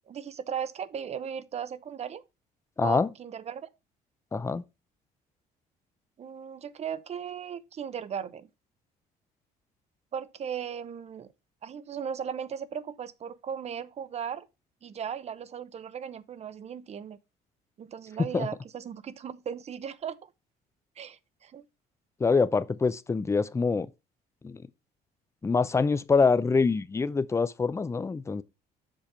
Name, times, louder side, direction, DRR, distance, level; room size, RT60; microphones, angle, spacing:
voice 1, 0.1-2.2 2.8-3.7 6.2-8.5 10.1-11.3 11.6-14.5 14.8-17.2 17.8-20.3 21.0-21.6, right 8 dB, 40° right, 0.7 m, -37 dB
voice 2, 2.8-3.1 4.3-4.6 18.3-18.5 22.2-23.9 24.4-24.6 25.4-28.4, left 4 dB, 15° left, 0.5 m, -25 dB
7.5 x 5.1 x 4.4 m
cardioid pair, 110°, 17 cm